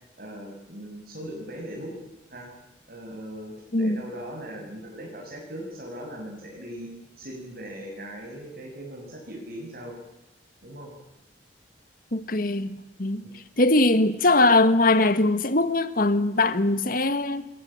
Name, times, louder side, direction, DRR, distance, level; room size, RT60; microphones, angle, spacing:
voice 1, 0.2-1.9 2.3-2.5 2.9-6.9 7.2-9.9 10.6-10.9 13.2-13.3, equal, 55° right, 6.3 m, -39 dB
voice 2, 12.1-13.2 13.6-17.5, left 2 dB, 50° left, 1.8 m, -21 dB
27.0 x 22.0 x 8.9 m
head